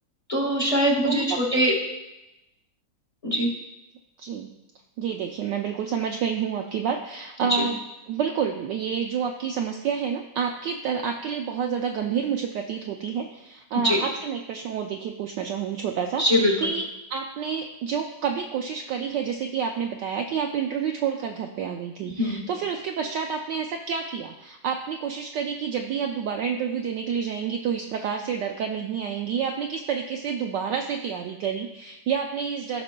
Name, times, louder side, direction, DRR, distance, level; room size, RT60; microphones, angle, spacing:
voice 1, 0.3-1.7 3.2-3.5 7.5-7.7 13.7-14.0 16.2-16.5 22.1-22.4, equal, 20° left, -2 dB, 1.2 m, -22 dB
voice 2, 1.0-1.4 4.2-4.5 5.0-7.8 8.1-32.8, right 7 dB, 75° right, 3 dB, 1.0 m, -29 dB
15.5 x 5.9 x 2.2 m, 0.97 s
omnidirectional pair, 2.3 m